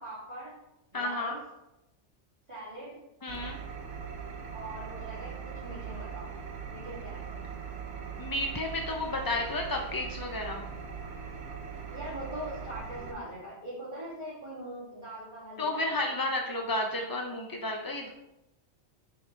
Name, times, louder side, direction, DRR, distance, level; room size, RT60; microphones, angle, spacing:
voice 1, 0.0-0.5 0.9-1.4 2.5-3.0 4.5-6.3 6.7-7.5 11.9-16.2, right 1 dB, 25° right, -11 dB, 2.3 m, -42 dB
voice 2, 0.9-1.4 3.2-3.6 8.2-10.6 15.6-18.1, left 2 dB, 30° left, 1 dB, 0.4 m, -32 dB
Engine, 3.3-13.1, right 6 dB, 80° right, 1.2 m, -40 dB
9.3 x 4.3 x 3.3 m, 0.90 s
omnidirectional pair, 1.2 m